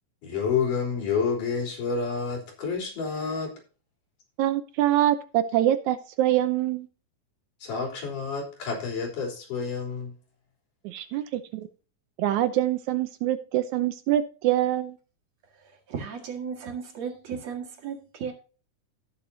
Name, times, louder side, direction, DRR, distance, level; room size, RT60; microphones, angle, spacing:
voice 1, 0.2-3.5 7.6-10.1, left 5 dB, 80° left, 5.2 m, -29 dB
voice 2, 4.4-6.9 10.8-11.7 12.2-15.0, right 13 dB, 75° right, 2.0 m, -25 dB
voice 3, 15.4-18.3, right 6 dB, 55° right, 3.0 m, -36 dB
17.0 x 7.0 x 2.7 m
omnidirectional pair, 3.7 m